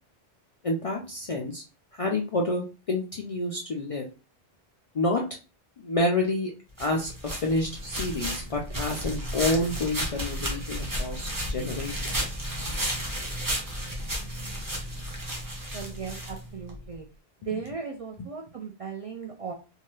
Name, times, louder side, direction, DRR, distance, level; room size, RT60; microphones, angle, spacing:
voice 1, 0.6-1.6 1.9-4.1 4.9-5.2 5.8-6.5 6.8-12.3, left 2 dB, 55° left, 1 dB, 0.4 m, -29 dB
sound 1, 6.8-16.8, equal, 20° right, 0.7 m, -33 dB
voice 2, 15.7-17.1 17.4-19.5, right 5 dB, 55° right, 0 dB, 0.4 m, -37 dB
2.8 x 2.2 x 3.1 m, 0.31 s
omnidirectional pair, 1.1 m